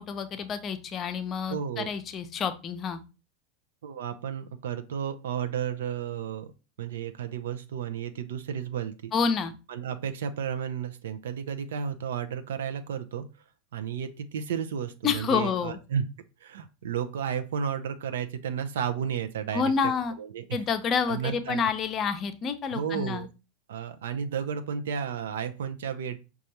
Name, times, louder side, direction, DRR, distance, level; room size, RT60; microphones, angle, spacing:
voice 1, 0.0-3.0 9.1-9.5 15.0-15.8 19.5-20.1 20.5-23.3, left 6 dB, 35° left, 9 dB, 0.6 m, -28 dB
voice 2, 1.5-1.9 3.8-6.5 6.8-9.1 9.7-13.3 13.7-16.1 16.4-19.9 20.2-20.6 21.1-21.6 22.7-23.3 23.7-26.2, right 8 dB, 75° right, 9 dB, 0.4 m, -32 dB
5.1 x 2.3 x 2.7 m, 0.30 s
hypercardioid pair, 90°, 0 cm